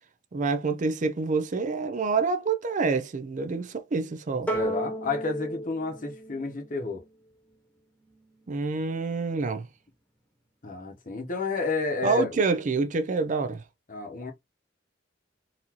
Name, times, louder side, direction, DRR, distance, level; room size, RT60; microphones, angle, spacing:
voice 1, 0.3-4.5 8.5-9.7 12.0-13.6, right 4 dB, 45° right, 0.4 m, -27 dB
voice 2, 4.5-7.0 10.6-12.4 13.9-14.3, left 3 dB, 45° left, 1.0 m, -31 dB
sound 1, 4.5-7.1, right 1 dB, 10° left, 1.1 m, -33 dB
4.0 x 2.7 x 2.9 m
head